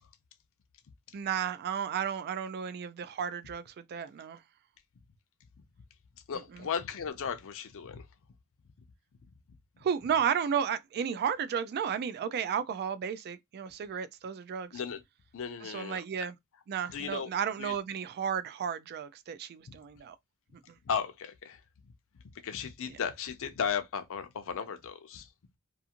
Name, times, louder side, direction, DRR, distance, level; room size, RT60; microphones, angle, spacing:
voice 1, 1.1-4.4 6.3-6.6 9.8-14.8 15.6-16.3 16.7-20.2 22.9-23.0, right 8 dB, 45° right, 0.3 m, -33 dB
voice 2, 6.3-8.0 14.7-15.0 15.3-16.0 16.9-17.3 17.6-17.8 19.7-19.8 20.9-21.6 22.4-25.3, left 7 dB, 65° left, 0.5 m, -35 dB
2.5 x 2.4 x 2.8 m
head